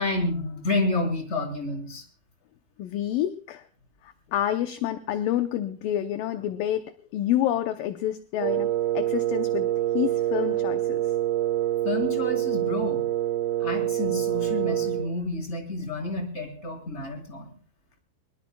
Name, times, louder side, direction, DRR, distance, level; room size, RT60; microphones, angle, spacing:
voice 1, 0.0-2.0 11.8-13.0 13.6-17.5, left 2 dB, 15° left, 2 dB, 4.3 m, -29 dB
voice 2, 2.8-3.6 4.0-9.7 9.9-11.0, left 12 dB, 75° left, 8 dB, 2.3 m, -28 dB
Wind instrument woodwind instrument, 8.4-15.1, right 13 dB, 80° right, 2.8 m, -26 dB
23.0 x 22.5 x 2.3 m, 0.40 s
omnidirectional pair, 4.4 m